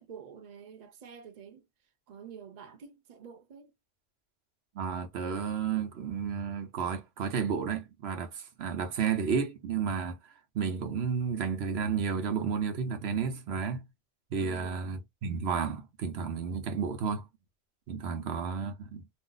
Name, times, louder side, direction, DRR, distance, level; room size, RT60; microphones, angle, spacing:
voice 1, 0.0-1.7 2.1-3.7 14.4-14.9 18.0-18.5, right 7 dB, 45° right, 0.7 m, -48 dB
voice 2, 4.7-10.2 10.5-13.8 14.3-17.3 17.9-19.0, right 6 dB, 80° right, 0.9 m, -32 dB
2.5 x 2.0 x 3.7 m
omnidirectional pair, 1.1 m